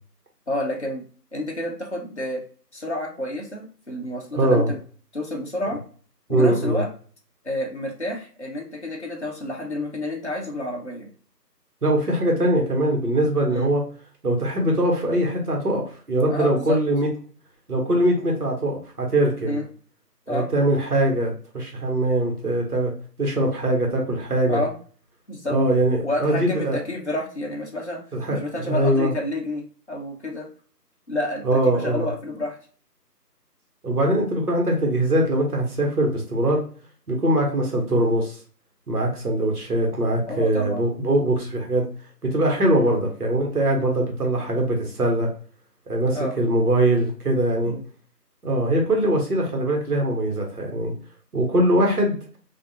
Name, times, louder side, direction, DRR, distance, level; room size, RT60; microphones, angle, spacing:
voice 1, 0.5-1.0 1.3-2.4 2.7-4.8 5.1-5.8 6.3-6.9 7.4-11.1 13.5-13.7 16.3-16.8 19.4-19.7 20.3-20.5 24.5-24.7 25.3-25.6 26.0-28.0 28.3-30.5 31.1-31.4 31.7-32.6 37.5-37.8 40.3-40.9 42.8-43.0 43.7-44.0 46.1-46.4 47.7-47.8, left 1 dB, 45° left, -1 dB, 0.6 m, -29 dB
voice 2, 4.3-4.7 6.3-6.8 11.8-13.8 14.2-17.1 17.7-19.6 20.3-22.9 23.2-24.6 25.5-26.8 28.1-29.1 31.4-32.1 33.8-36.6 37.1-38.4 38.9-41.9 42.2-45.3 45.9-47.7 48.4-50.9 51.3-52.2, right 1 dB, 65° right, 0 dB, 1.1 m, -22 dB
2.5 x 2.2 x 2.7 m, 0.42 s
figure-of-eight pair, 170°, 50 cm